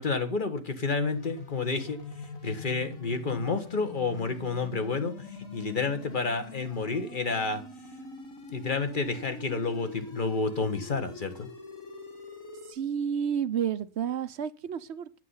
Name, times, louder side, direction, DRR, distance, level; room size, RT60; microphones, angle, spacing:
voice 1, 0.0-2.0 2.4-7.6 8.5-11.5, left 4 dB, 35° left, 1.3 m, -30 dB
sound 1, 1.1-12.7, left 4 dB, 65° left, 2.5 m, -43 dB
voice 2, 12.7-15.2, right 8 dB, 55° right, 0.9 m, -31 dB
9.2 x 7.8 x 5.6 m
omnidirectional pair, 1.5 m